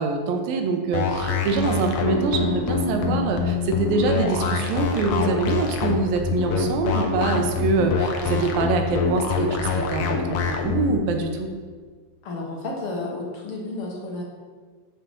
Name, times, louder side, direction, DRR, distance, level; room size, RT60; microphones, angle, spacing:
voice 1, 0.0-11.5, right 4 dB, 85° right, 4 dB, 2.7 m, -24 dB
sound 1, 0.9-10.9, left 5 dB, 85° left, 1.3 m, -25 dB
voice 2, 12.2-14.2, left 2 dB, 55° left, -2 dB, 1.7 m, -31 dB
6.4 x 5.7 x 6.9 m, 1.5 s
omnidirectional pair, 4.0 m